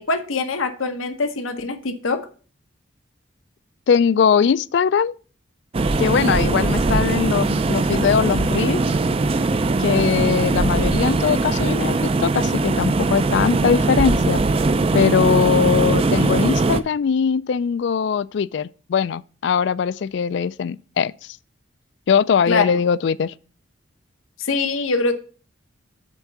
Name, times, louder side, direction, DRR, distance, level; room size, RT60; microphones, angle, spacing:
voice 1, 0.0-2.2 22.5-22.8 24.4-25.1, left 3 dB, 90° left, 0.9 m, -23 dB
voice 2, 3.9-5.1 6.0-8.8 9.8-14.4 14.9-21.4 22.1-23.3, left 6 dB, 60° left, 0.3 m, -21 dB
sound 1, 5.7-16.8, right 3 dB, 30° right, 0.3 m, -20 dB
8.2 x 3.6 x 6.7 m
head